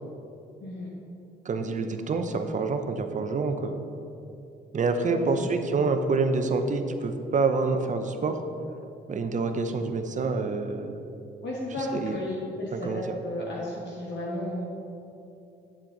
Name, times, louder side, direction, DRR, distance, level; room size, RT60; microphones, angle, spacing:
voice 1, 1.4-3.7 4.7-8.4 9.1-10.9 11.8-12.2 12.7-13.0, right 4 dB, 40° right, 7 dB, 0.7 m, -27 dB
voice 2, 5.0-5.5 11.4-14.7, left 1 dB, 60° left, -4 dB, 1.4 m, -33 dB
8.7 x 7.4 x 3.9 m, 2.8 s
cardioid pair, 90°, 20 cm